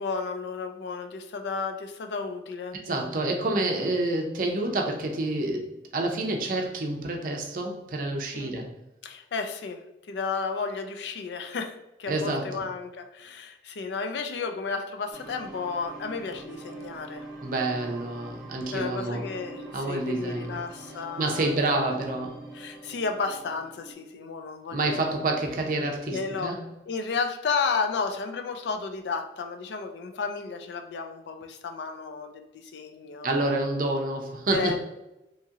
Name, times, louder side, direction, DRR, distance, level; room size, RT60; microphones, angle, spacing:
voice 1, 0.0-2.8 8.3-8.5 9.0-9.8 10.1-17.3 18.7-19.6 19.9-21.9 22.5-25.0 26.1-26.6 26.9-33.6 34.5-34.8, left 4 dB, 75° left, 6 dB, 0.4 m, -33 dB
voice 2, 2.8-8.8 12.1-12.6 17.4-19.2 19.7-20.6 21.2-22.5 24.7-26.6 33.2-34.8, right 2 dB, 50° right, 2 dB, 0.5 m, -28 dB
sound 1, 15.1-23.9, right 2 dB, ahead, 0.8 m, -44 dB
2.9 x 2.7 x 2.4 m, 0.96 s
head